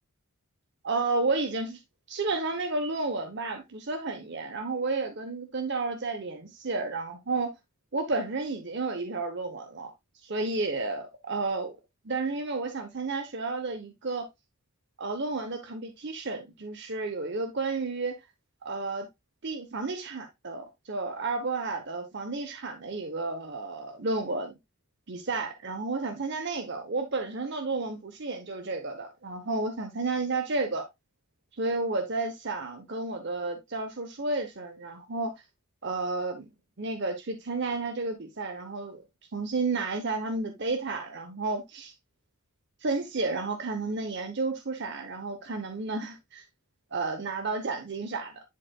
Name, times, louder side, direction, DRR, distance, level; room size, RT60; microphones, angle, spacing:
voice 1, 0.8-1.8 2.1-7.5 7.9-9.9 10.2-11.7 12.0-14.3 15.0-18.2 18.6-19.1 19.4-24.5 25.1-30.9 31.6-35.3 35.8-36.5 36.8-39.0 39.3-41.9 42.8-46.4 46.9-48.4, right 3 dB, 55° right, 0.9 m, -31 dB
10.5 x 4.4 x 2.3 m
head